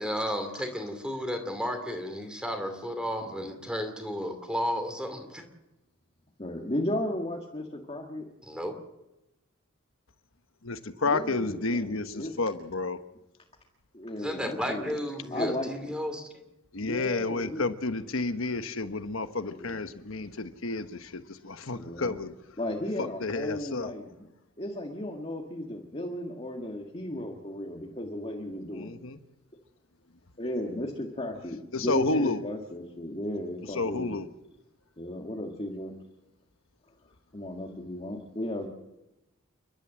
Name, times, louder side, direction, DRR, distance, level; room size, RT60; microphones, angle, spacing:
voice 1, 0.0-5.4 8.5-8.8 14.2-16.3, equal, 5° right, 6 dB, 2.5 m, -33 dB
voice 2, 6.4-8.3 11.0-12.3 13.9-15.0 15.3-15.9 16.8-17.6 19.4-19.8 21.7-22.1 22.6-24.3 24.6-28.9 30.4-34.2 35.0-35.9 37.3-38.7, left 1 dB, 30° left, 0 dB, 1.8 m, -35 dB
voice 3, 10.6-13.0 16.7-22.3 23.0-23.9 28.8-28.9 31.7-32.4 33.7-34.3, left 3 dB, 70° left, 9 dB, 1.2 m, -31 dB
29.5 x 12.5 x 7.6 m, 0.96 s
head